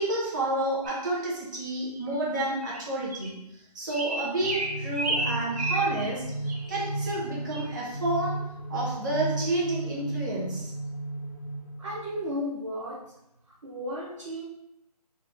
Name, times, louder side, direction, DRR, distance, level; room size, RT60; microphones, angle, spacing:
voice 1, 0.0-3.4 3.7-6.3 6.7-8.4 8.7-10.7, right 2 dB, 30° right, -5 dB, 1.1 m, -30 dB
sound 1, 0.8-1.1 1.9-2.0 2.6-2.8 3.1-3.3 3.9-6.1 6.5-6.6 7.0-7.2 7.5-7.7, right 2 dB, 70° right, 1.3 m, -32 dB
sound 2, 4.4-12.3, right 2 dB, 15° left, 0.3 m, -34 dB
voice 2, 11.8-13.1 13.6-14.5, equal, 50° right, -5 dB, 0.7 m, -34 dB
4.1 x 2.2 x 4.1 m, 0.82 s
figure-of-eight pair, 160°, 21 cm